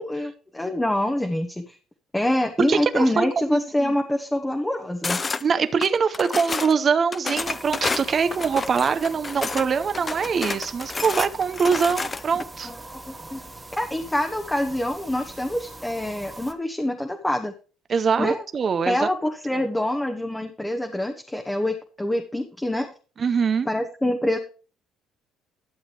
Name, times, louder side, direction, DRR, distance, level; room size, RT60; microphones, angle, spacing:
voice 1, 0.0-1.8 2.1-5.2 12.3-12.7 13.0-13.4 13.8-17.5 18.2-18.4 18.9-22.9 23.6-24.4, left 1 dB, 10° left, 1.0 m, -26 dB
voice 2, 2.7-3.2 3.5-3.9 5.4-12.7 17.9-19.1 23.2-23.7, right 6 dB, 35° right, 0.7 m, -23 dB
sound 1, 5.0-5.4 5.8-6.7 7.1-9.7 9.9-12.4, left 4 dB, 25° left, 0.5 m, -29 dB
sound 2, 7.3-16.5, right 2 dB, 15° right, 1.1 m, -42 dB
12.0 x 7.3 x 3.3 m
cardioid pair, 110°, 0 cm